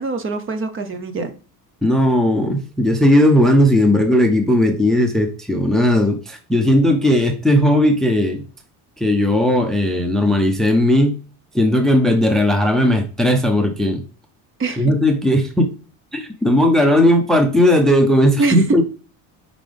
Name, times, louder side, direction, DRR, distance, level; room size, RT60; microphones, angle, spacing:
voice 1, 0.0-1.3 14.6-14.9 18.4-18.8, right 3 dB, 30° right, 9 dB, 0.8 m, -23 dB
voice 2, 1.8-8.4 9.0-11.2 11.5-14.0 14.8-15.7 16.1-18.8, left 1 dB, ahead, 5 dB, 0.6 m, -16 dB
5.6 x 5.1 x 3.4 m, 0.36 s
cardioid pair, 135°, 40 cm